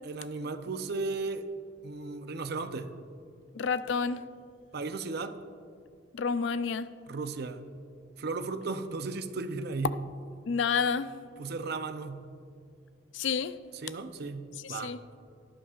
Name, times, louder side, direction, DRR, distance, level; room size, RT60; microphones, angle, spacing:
voice 1, 0.0-1.5 1.8-2.9 4.7-5.4 7.1-7.7 8.2-9.9 11.4-12.3 13.7-15.0, right 3 dB, 60° right, 0.6 m, -35 dB
voice 2, 3.5-4.3 6.1-6.9 10.5-11.1 13.1-13.5 14.6-15.0, left 5 dB, 80° left, 0.4 m, -29 dB
17.5 x 11.0 x 2.5 m
head